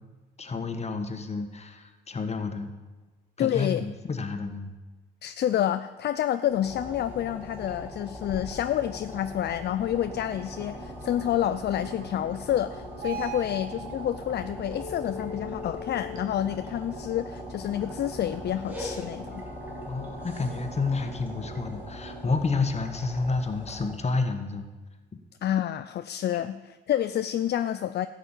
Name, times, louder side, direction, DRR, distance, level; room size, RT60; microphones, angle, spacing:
voice 1, 0.4-2.7 3.4-4.7 19.9-24.7, left 4 dB, 35° left, 6 dB, 1.6 m, -30 dB
voice 2, 3.4-3.8 5.2-19.5 25.4-28.1, left 11 dB, 55° left, 11 dB, 0.5 m, -28 dB
sound 1, 6.5-24.0, left 1 dB, 5° right, 3.0 m, -41 dB
sound 2, 9.9-22.4, right 3 dB, 75° right, 2.0 m, -43 dB
12.5 x 6.7 x 9.0 m, 1.2 s
cardioid pair, 90°, 20 cm